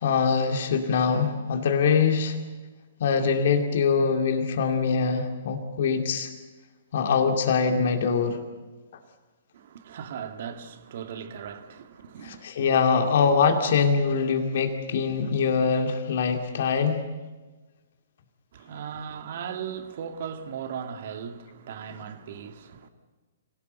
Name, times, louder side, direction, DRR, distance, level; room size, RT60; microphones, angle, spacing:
voice 1, 0.0-2.4 3.0-6.3 6.9-8.4 12.2-17.0, left 5 dB, 60° left, 2.3 m, -23 dB
voice 2, 9.5-12.5 18.5-22.9, right 7 dB, 55° right, 1.9 m, -37 dB
25.0 x 18.0 x 8.1 m
hypercardioid pair, 125°, 0 cm